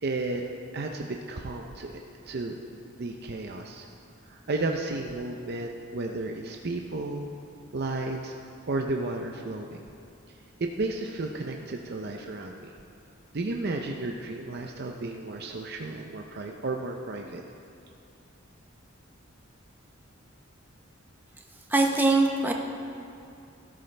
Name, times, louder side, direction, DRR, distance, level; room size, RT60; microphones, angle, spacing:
voice 1, 0.0-0.4 0.7-1.9 2.3-3.9 4.3-7.3 7.7-8.4 8.7-9.8 10.6-12.7 13.3-17.4, right 2 dB, 50° right, 2 dB, 0.6 m, -33 dB
voice 2, 21.7-22.5, right 2 dB, 10° right, 0 dB, 0.7 m, -22 dB
14.5 x 12.5 x 3.3 m, 2.6 s
head